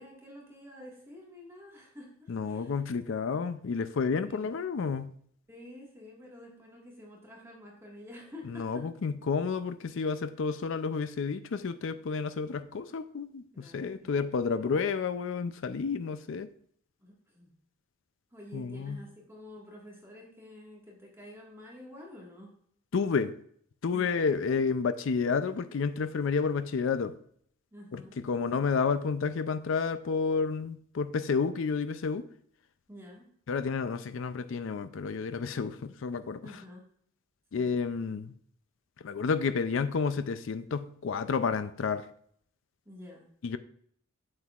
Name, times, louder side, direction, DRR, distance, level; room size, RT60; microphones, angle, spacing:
voice 1, 0.0-2.9 4.2-4.5 5.5-8.9 13.5-14.1 14.4-14.8 17.0-17.5 18.3-22.5 23.9-24.3 27.7-28.2 32.9-33.3 36.4-36.9 42.8-43.3, left 1 dB, 10° right, -2 dB, 1.6 m, -49 dB
voice 2, 2.3-5.1 8.5-16.5 18.5-19.0 22.9-23.4 23.8-27.2 27.9-32.3 33.5-36.4 37.5-38.3 39.0-42.1 43.4-43.6, left 5 dB, 65° left, 12 dB, 0.4 m, -30 dB
7.8 x 7.6 x 2.4 m, 0.64 s
head